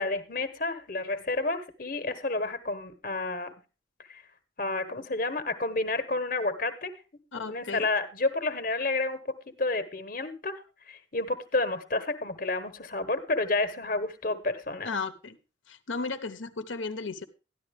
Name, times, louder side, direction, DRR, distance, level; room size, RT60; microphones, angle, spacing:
voice 1, 0.0-3.5 4.1-4.2 4.6-6.9 7.4-9.2 9.5-10.6 10.9-14.9, left 2 dB, 45° left, 10 dB, 1.1 m, -30 dB
voice 2, 7.3-7.9 14.8-15.4 15.7-17.2, left 4 dB, 80° left, 8 dB, 1.0 m, -34 dB
13.0 x 11.0 x 3.5 m, 0.31 s
head